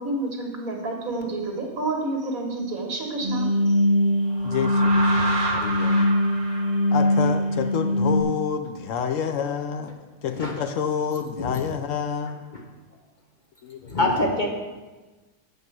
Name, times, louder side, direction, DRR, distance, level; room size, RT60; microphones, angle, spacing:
voice 1, 0.0-3.8, right 2 dB, 75° right, 1 dB, 1.9 m, -29 dB
sound 1, 3.2-8.2, equal, 30° right, 1.7 m, -21 dB
voice 2, 4.4-6.1 6.9-10.0 10.2-12.4 13.6-14.0 14.3-14.5, left 7 dB, 70° left, 7 dB, 0.9 m, -28 dB
voice 3, 13.9-14.5, left 2 dB, 40° left, 1 dB, 0.9 m, -23 dB
8.1 x 5.3 x 5.9 m, 1.2 s
omnidirectional pair, 1.5 m